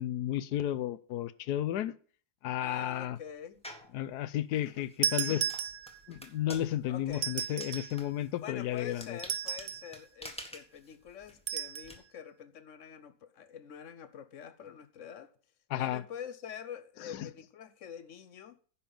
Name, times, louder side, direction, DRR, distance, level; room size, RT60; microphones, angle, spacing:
voice 1, 0.0-2.0 2.4-3.2 3.9-5.5 6.1-9.2 15.7-16.0 17.1-17.3, left 12 dB, 85° left, 1.2 m, -33 dB
voice 2, 2.5-3.6 6.9-7.3 8.4-15.3 15.8-18.6, left 8 dB, 60° left, 1.0 m, -45 dB
sound 1, 3.6-4.0 4.5-11.9, equal, 5° left, 1.3 m, -49 dB
sound 2, 5.0-6.2 7.1-8.0 9.2-10.0 11.5-11.9, right 9 dB, 60° right, 0.7 m, -34 dB
10.0 x 5.7 x 6.9 m
omnidirectional pair, 1.7 m